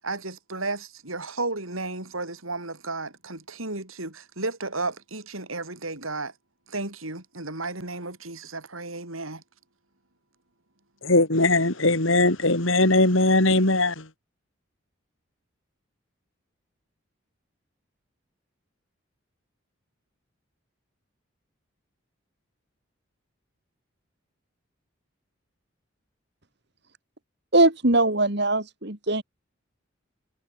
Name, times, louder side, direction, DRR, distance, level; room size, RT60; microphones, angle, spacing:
voice 1, 0.0-6.3 6.7-9.4, right 3 dB, 85° right, 7.8 m, -33 dB
voice 2, 11.0-14.1, left 2 dB, 75° left, 4.0 m, -20 dB
voice 3, 27.5-29.2, right 2 dB, 55° right, 3.1 m, -21 dB
head